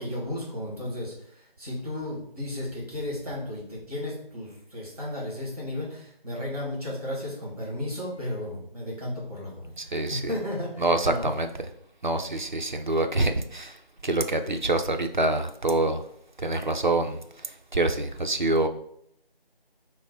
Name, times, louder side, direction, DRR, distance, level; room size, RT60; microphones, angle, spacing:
voice 1, 0.0-11.3, left 1 dB, 15° right, -5 dB, 1.2 m, -34 dB
voice 2, 9.8-10.2 10.8-11.5 12.0-13.8 14.0-16.0 16.4-17.2 17.7-18.7, right 2 dB, 50° right, 7 dB, 0.5 m, -25 dB
5.0 x 2.1 x 4.4 m, 0.69 s
figure-of-eight pair, 170°, 30 cm